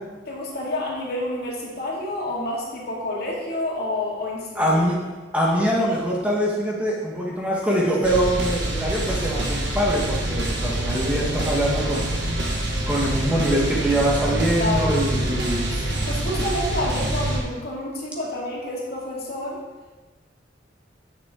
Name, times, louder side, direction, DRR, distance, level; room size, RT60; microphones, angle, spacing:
voice 1, 0.3-4.6 10.6-10.9 14.6-15.0 15.7-15.8 16.0-19.6, left 1 dB, 55° left, -4 dB, 2.2 m, -29 dB
voice 2, 4.5-5.0 5.3-12.1 12.9-15.8, equal, 5° right, -4 dB, 1.3 m, -23 dB
sound 1, 8.0-17.4, right 1 dB, 65° right, 1.5 m, -26 dB
9.6 x 7.0 x 3.7 m, 1.2 s
head